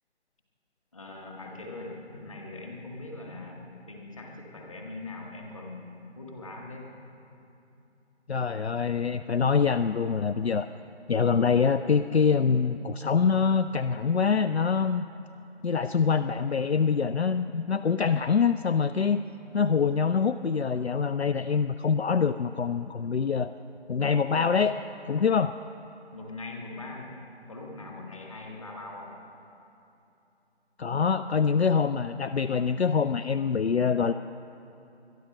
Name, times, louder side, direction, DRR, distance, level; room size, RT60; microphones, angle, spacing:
voice 1, 0.9-6.9 26.1-27.1 27.5-29.1, left 2 dB, 30° left, 0 dB, 1.7 m, -41 dB
voice 2, 8.3-10.7 11.1-15.1 15.6-19.2 19.5-23.5 23.9-24.8 25.0-25.5 30.8-34.1, left 6 dB, 65° left, 11 dB, 0.5 m, -25 dB
21.5 x 12.0 x 5.3 m, 2.9 s
figure-of-eight pair, 160°, 34 cm